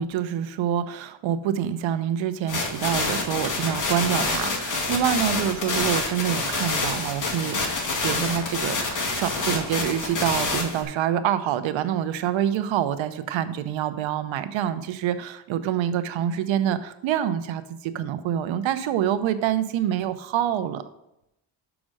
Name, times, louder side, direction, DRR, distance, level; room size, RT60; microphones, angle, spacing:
voice 1, 0.0-7.6 8.0-20.8, right 10 dB, 85° right, 12 dB, 0.8 m, -26 dB
sound 1, 2.5-10.8, left 3 dB, 40° left, 2.0 m, -27 dB
6.3 x 6.1 x 6.2 m, 0.85 s
cardioid pair, 125°, 45 cm